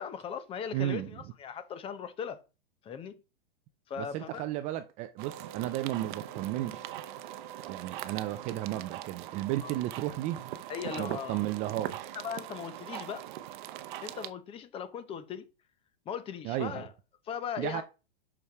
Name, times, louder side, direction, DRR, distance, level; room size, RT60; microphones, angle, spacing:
voice 1, 0.0-2.4 2.8-3.2 3.9-4.4 9.6-9.7 10.7-11.4 12.2-13.3 14.0-15.5 16.1-16.9 17.3-17.8, left 7 dB, 20° left, 0.7 m, -38 dB
voice 2, 0.7-1.1 4.0-6.9 7.7-10.5 11.0-12.2 16.4-16.8 17.6-17.8, right 14 dB, 25° right, 0.4 m, -34 dB
sound 1, 5.2-14.3, right 13 dB, 55° right, 0.8 m, -41 dB
6.0 x 5.5 x 4.7 m
supercardioid pair, 150°, 30 cm